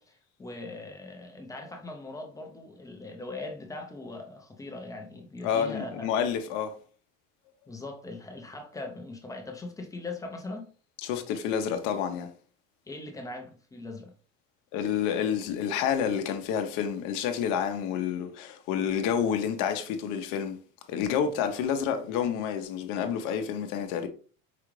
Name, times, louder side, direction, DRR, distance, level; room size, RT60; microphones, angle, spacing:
voice 1, 0.0-6.1 7.7-10.7 12.9-14.1, left 2 dB, 10° left, 0.5 m, -40 dB
voice 2, 5.4-6.7 11.0-12.3 14.7-20.6 20.9-24.1, left 8 dB, 55° left, 0.7 m, -29 dB
4.9 x 2.4 x 3.1 m
supercardioid pair, 140°, 38 cm